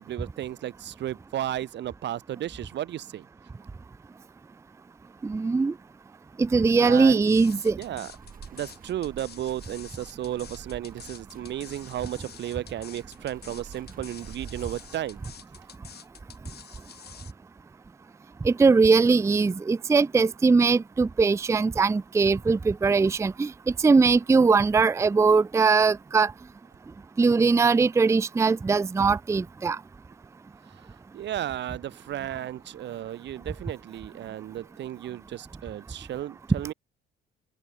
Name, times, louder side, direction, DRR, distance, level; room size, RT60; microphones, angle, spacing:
voice 1, 0.0-3.2 6.8-7.3 7.8-8.1 8.5-15.2 30.7-30.8 31.1-36.7, right 12 dB, 65° right, 0.7 m, -34 dB
voice 2, 5.2-5.7 6.4-7.8 18.4-23.5 23.8-26.3 27.2-29.8, right 4 dB, 15° right, 0.4 m, -21 dB
sound 1, 7.3-17.3, left 8 dB, 55° left, 2.6 m, -48 dB
Wind, 8.1-15.7, right 6 dB, 45° right, 6.7 m, -47 dB
open air
cardioid pair, 90°, 20 cm